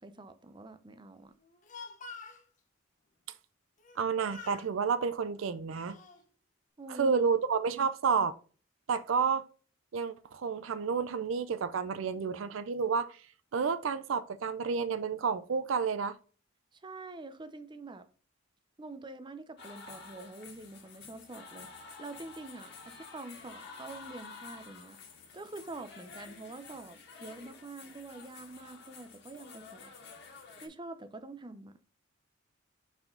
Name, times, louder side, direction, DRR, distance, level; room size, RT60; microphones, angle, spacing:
voice 1, 0.0-1.3 6.8-7.2 7.7-7.9 8.1-8.3 16.7-18.1 18.8-21.7 22.0-25.0 25.3-29.9 30.6-31.7, right 2 dB, 25° right, 0.5 m, -46 dB
Speech, 1.4-2.4 3.8-4.0 4.3-4.7 5.4-6.2, left 4 dB, 40° left, 0.8 m, -48 dB
voice 2, 4.0-6.0 7.0-8.4 8.9-9.4 9.9-13.2 13.5-16.2, right 5 dB, 80° right, 0.5 m, -30 dB
sound 1, 19.6-30.7, left 5 dB, 60° left, 1.7 m, -50 dB
5.8 x 4.7 x 3.7 m
head